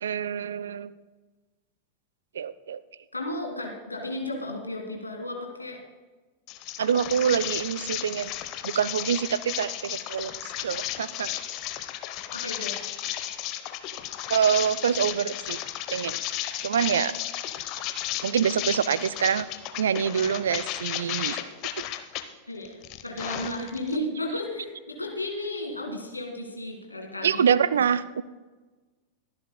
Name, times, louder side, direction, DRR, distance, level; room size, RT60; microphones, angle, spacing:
voice 1, 0.0-0.9 2.3-2.8 6.8-8.4 8.6-11.4 14.3-15.6 15.9-16.2 16.6-17.1 18.2-19.5 19.8-21.4 27.2-28.2, right 8 dB, 65° right, 18 dB, 0.4 m, -26 dB
voice 2, 3.1-5.8 12.3-12.8 22.5-27.5, left 1 dB, 85° left, 2 dB, 1.8 m, -34 dB
sound 1, 6.5-22.2 22.6-24.0, left 13 dB, 40° left, 0.8 m, -34 dB
23.0 x 10.5 x 2.2 m, 1.3 s
figure-of-eight pair, 90°, 0 cm